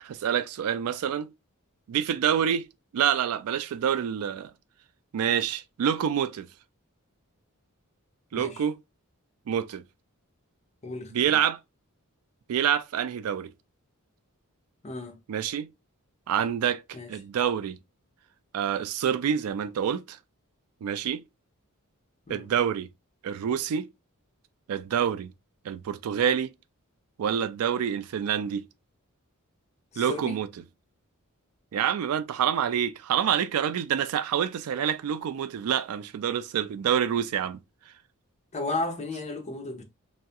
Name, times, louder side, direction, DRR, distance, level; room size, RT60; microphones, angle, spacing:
voice 1, 0.0-1.3 1.9-2.6 2.9-4.5 5.1-6.5 8.3-8.8 9.5-9.8 11.1-11.6 12.5-13.5 15.3-15.7 16.3-16.8 17.1-17.8 18.5-20.2 20.8-21.2 22.3-22.9 23.2-23.9 24.7-25.3 25.6-26.5 27.2-28.6 30.0-30.5 31.7-37.6, right 8 dB, 70° right, 0.3 m, -27 dB
voice 2, 10.8-11.4 14.8-15.1 16.9-17.1 22.3-22.5 29.9-30.3 38.5-39.8, left 2 dB, 30° left, 0.5 m, -34 dB
2.3 x 2.0 x 2.6 m
head